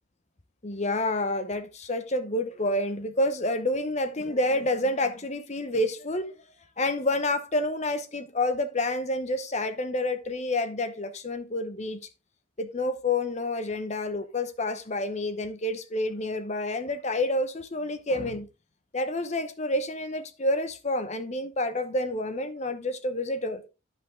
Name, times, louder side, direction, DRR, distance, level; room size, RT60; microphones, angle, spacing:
voice 1, 0.6-6.3 6.8-12.1 12.6-18.5 18.9-23.6, left 1 dB, 35° left, 0.8 m, -28 dB
10.5 x 5.4 x 3.6 m
head